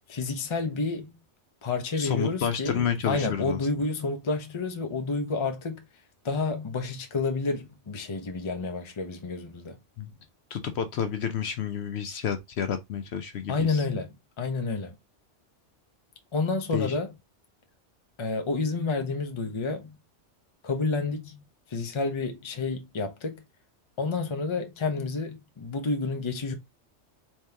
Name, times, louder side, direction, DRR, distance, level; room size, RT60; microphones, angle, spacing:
voice 1, 0.1-1.1 1.6-2.8 3.1-5.8 6.2-9.8 13.5-15.0 16.3-17.1 18.2-19.9 20.6-21.4 21.7-23.4 24.0-26.5, left 3 dB, 30° left, 0.6 m, -29 dB
voice 2, 1.9-3.6 10.0-10.1 10.5-13.8 16.7-16.9, left 8 dB, 65° left, 0.8 m, -30 dB
3.6 x 3.0 x 3.3 m
omnidirectional pair, 1.2 m